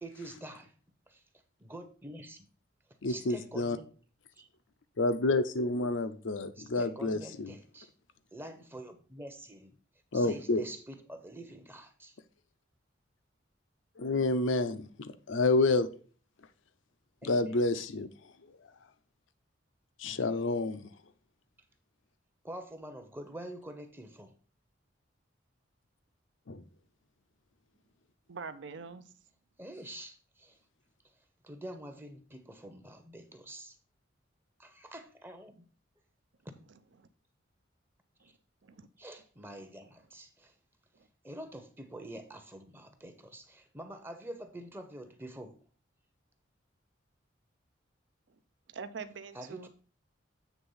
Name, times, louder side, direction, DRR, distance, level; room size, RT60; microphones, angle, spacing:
voice 1, 0.0-0.7 1.1-1.2 1.6-2.5 3.1-3.9 4.4-4.5 6.6-7.9 8.3-9.7 10.1-12.1 17.2-17.5 22.4-24.3 29.6-30.6 31.4-33.7 34.6-35.6 39.0-40.5 41.2-45.6 49.3-49.7, right 1 dB, 10° right, 0.7 m, -46 dB
voice 2, 3.0-3.8 5.0-7.5 10.1-10.6 14.0-15.9 17.2-18.1 20.0-20.9 26.5-26.6, left 2 dB, 75° left, 0.6 m, -29 dB
voice 3, 28.3-29.1 37.0-37.1 38.2-38.3 38.6-38.9 48.7-49.7, right 5 dB, 65° right, 0.5 m, -44 dB
8.2 x 3.5 x 5.5 m
head